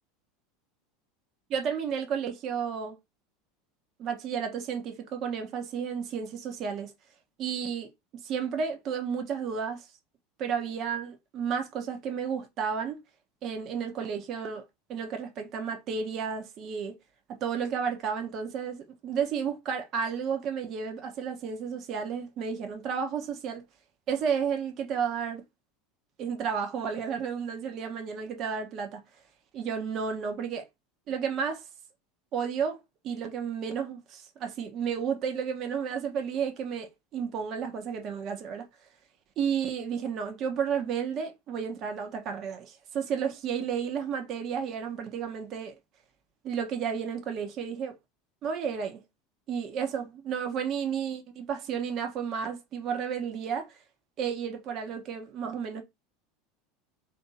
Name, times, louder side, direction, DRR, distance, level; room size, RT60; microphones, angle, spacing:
voice 1, 1.5-3.0 4.0-6.9 7.4-7.9 8.2-9.9 10.4-13.0 13.4-17.0 17.4-23.6 24.1-25.4 26.2-29.0 29.5-30.7 31.1-31.6 32.3-38.7 39.4-45.8 46.4-48.0 48.4-49.0 49.5-53.8 54.2-55.8, right 7 dB, 50° right, 0.9 m, -32 dB
3.5 x 2.7 x 4.1 m
hypercardioid pair, 85°, 0 cm